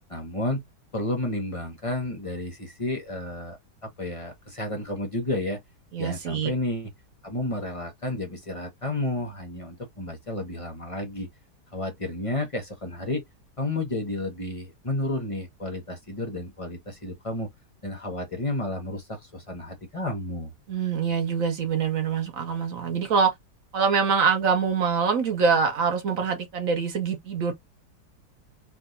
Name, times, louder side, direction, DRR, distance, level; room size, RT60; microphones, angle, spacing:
voice 1, 0.1-0.6 0.9-5.6 6.0-6.9 7.2-11.3 11.7-13.2 13.6-17.5 17.8-20.5, left 1 dB, 35° left, 0.5 m, -31 dB
voice 2, 5.9-6.5 20.7-23.3 23.7-27.5, right 6 dB, 60° right, 1.0 m, -24 dB
3.3 x 2.5 x 2.6 m
omnidirectional pair, 1.8 m